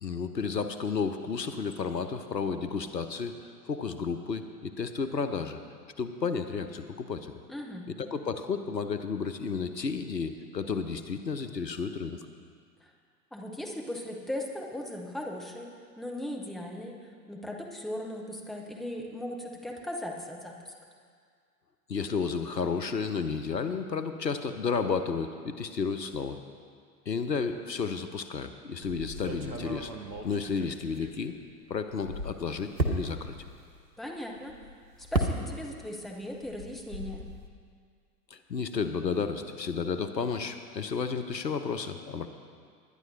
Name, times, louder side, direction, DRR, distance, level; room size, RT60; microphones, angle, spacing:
voice 1, 0.0-5.6 6.0-7.3 7.9-12.2 21.9-26.4 27.1-29.9 30.2-31.3 31.7-33.3 38.3-42.3, left 5 dB, 85° left, 9 dB, 0.8 m, -32 dB
voice 2, 7.5-7.9 12.8-12.9 13.3-17.0 17.3-20.7 34.0-34.5 35.1-37.2, left 1 dB, ahead, -1 dB, 0.9 m, -38 dB
sound 1, 28.8-31.5 31.9-35.9 36.2-37.5, right 2 dB, 90° right, 1.1 m, -35 dB
20.0 x 10.5 x 2.8 m, 2.1 s
figure-of-eight pair, 95°, 49 cm